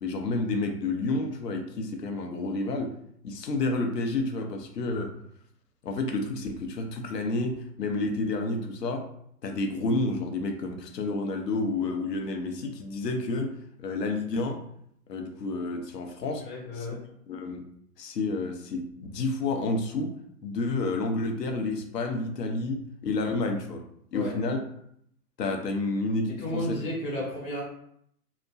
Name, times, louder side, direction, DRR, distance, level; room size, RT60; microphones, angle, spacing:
voice 1, 0.0-2.9 3.2-5.1 5.8-9.0 9.4-13.5 13.8-14.6 15.1-16.4 16.7-16.9 17.3-17.6 18.0-20.1 20.4-23.8 24.1-24.6 25.4-26.8, left 2 dB, 80° left, 3 dB, 0.8 m, -30 dB
voice 2, 16.4-17.0 24.1-24.4 26.4-27.6, left 1 dB, 10° left, -6 dB, 0.7 m, -33 dB
2.8 x 2.1 x 2.5 m, 0.70 s
hypercardioid pair, 130°, 49 cm